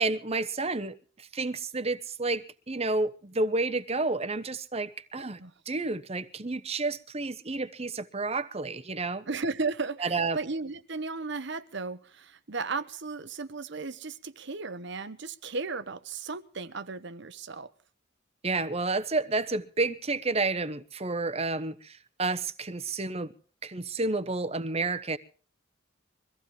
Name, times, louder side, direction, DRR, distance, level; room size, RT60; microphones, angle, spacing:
voice 1, 0.0-5.4 5.7-9.3 10.0-10.4 18.4-23.3 23.6-25.2, right 3 dB, 30° right, 1.0 m, -30 dB
voice 2, 5.2-5.5 9.3-17.7, right 4 dB, 60° right, 1.0 m, -35 dB
23.5 x 15.0 x 3.3 m
head